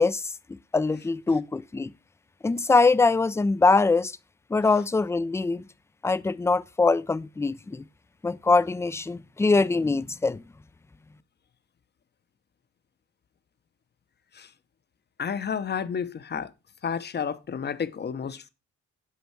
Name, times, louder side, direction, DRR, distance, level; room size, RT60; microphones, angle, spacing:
voice 1, 0.0-1.9 2.4-4.2 4.5-5.7 6.0-7.8 8.2-10.4, left 3 dB, 10° left, 0.3 m, -23 dB
voice 2, 15.2-16.5 16.8-18.5, left 7 dB, 35° left, 0.7 m, -31 dB
8.4 x 5.4 x 4.5 m
cardioid pair, 90°, 30 cm